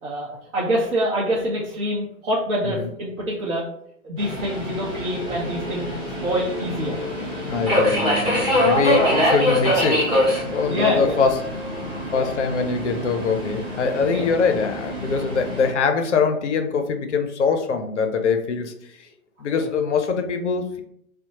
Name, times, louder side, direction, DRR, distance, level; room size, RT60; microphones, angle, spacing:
voice 1, 0.0-3.7 4.0-5.9 6.2-7.0 10.7-11.2 12.1-12.3 14.1-14.3 19.5-19.7, equal, 55° right, -5 dB, 0.7 m, -25 dB
Subway metro underground, 4.2-15.7, equal, 10° right, 1.1 m, -24 dB
voice 2, 7.4-10.1 10.5-11.4 12.1-18.7 19.4-20.8, left 5 dB, 55° left, 7 dB, 0.5 m, -23 dB
2.7 x 2.1 x 2.8 m, 0.70 s
figure-of-eight pair, 120°, 44 cm